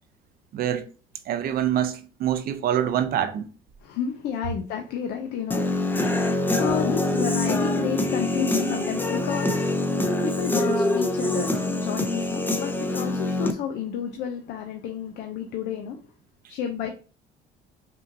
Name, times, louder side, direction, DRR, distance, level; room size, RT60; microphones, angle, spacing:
voice 1, 0.5-0.9 1.3-3.5, right 10 dB, 60° right, 0.6 m, -25 dB
voice 2, 3.8-9.7 10.2-16.0 16.5-16.9, left 8 dB, 80° left, 0.6 m, -31 dB
Human voice / Guitar, 5.5-13.5, left 2 dB, 10° left, 0.5 m, -25 dB
5.5 x 2.6 x 2.7 m
cardioid pair, 110°, 17 cm